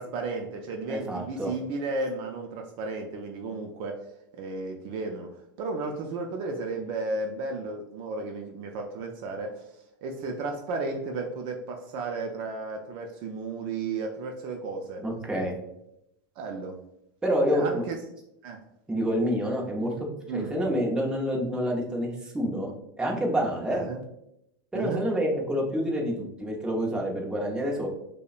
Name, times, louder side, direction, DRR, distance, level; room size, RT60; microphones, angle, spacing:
voice 1, 0.0-4.0 4.4-9.6 10.0-15.0 16.4-16.8 17.5-18.0 18.4-18.6 20.3-20.6 23.7-24.0 24.7-25.0, right 3 dB, 45° right, 3 dB, 0.5 m, -33 dB
voice 2, 0.9-1.5 15.0-15.6 17.2-17.8 18.9-22.7 23.0-23.9 24.7-27.9, equal, 5° right, -1 dB, 0.7 m, -28 dB
5.1 x 2.1 x 2.4 m, 0.82 s
supercardioid pair, 135°, 11 cm